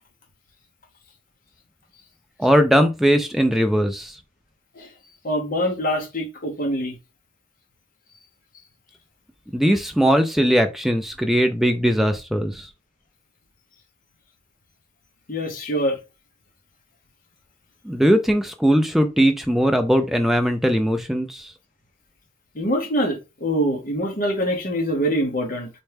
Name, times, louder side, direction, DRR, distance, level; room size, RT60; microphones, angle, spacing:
voice 1, 2.4-4.1 9.5-12.7 17.9-21.5, equal, ahead, 0.3 m, -19 dB
voice 2, 5.2-7.0 15.3-16.0 22.5-25.7, equal, 45° left, 0.8 m, -24 dB
4.2 x 2.2 x 3.3 m
head